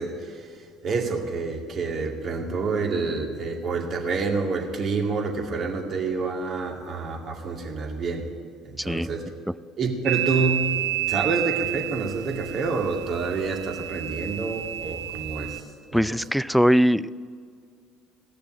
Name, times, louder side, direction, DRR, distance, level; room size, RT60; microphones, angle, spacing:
voice 1, 0.0-8.3 8.6-9.3 9.8-10.7 11.1-15.6 15.9-16.0, right 4 dB, 50° right, 1 dB, 2.2 m, -28 dB
voice 2, 8.8-9.1 15.9-17.1, equal, ahead, 18 dB, 0.4 m, -21 dB
sound 1, 10.1-15.6, right 13 dB, 70° right, 0.5 m, -30 dB
17.0 x 6.8 x 8.7 m, 2.1 s
hypercardioid pair, 60°, 0 cm